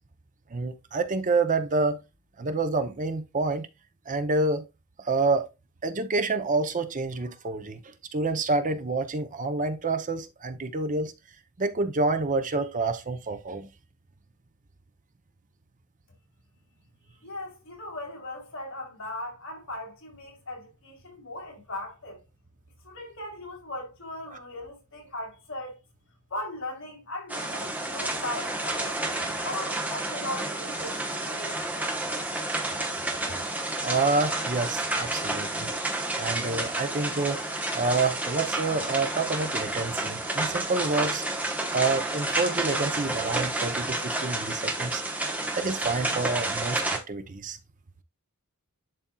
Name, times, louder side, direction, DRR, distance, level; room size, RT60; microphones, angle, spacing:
voice 1, 0.5-2.0 2.4-3.7 4.1-4.6 5.0-5.5 5.8-7.8 8.1-11.1 11.6-13.7 33.8-35.7 36.2-37.4 37.7-41.2 41.7-45.0 45.5-47.6, right 3 dB, 35° right, 0.7 m, -28 dB
voice 2, 17.2-22.2 22.8-25.7 26.3-31.6, left 1 dB, 60° left, 3.1 m, -38 dB
sound 1, 27.3-47.0, right 2 dB, 5° right, 1.0 m, -30 dB
11.0 x 4.3 x 2.3 m
head